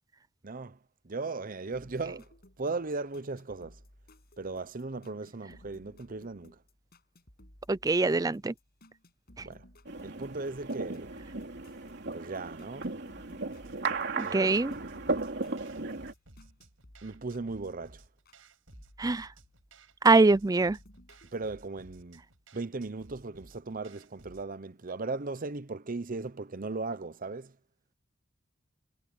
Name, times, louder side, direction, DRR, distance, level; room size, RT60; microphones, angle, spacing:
voice 1, 0.4-0.8 1.0-3.8 4.4-6.6 9.4-9.7 10.0-11.1 12.1-12.9 14.2-15.1 17.0-18.0 21.3-22.2 22.5-27.6, right 3 dB, 45° right, 0.9 m, -37 dB
sound 1, 1.7-18.4 18.7-20.3 20.6-21.5, left 1 dB, 50° left, 7.4 m, -59 dB
voice 2, 7.7-8.5 14.2-14.8 19.0-19.3 20.0-20.8, right 3 dB, 20° right, 0.4 m, -23 dB
sound 2, 9.9-16.1, right 3 dB, 60° right, 3.1 m, -36 dB
sound 3, 13.5-24.5, right 2 dB, 85° right, 5.9 m, -57 dB
head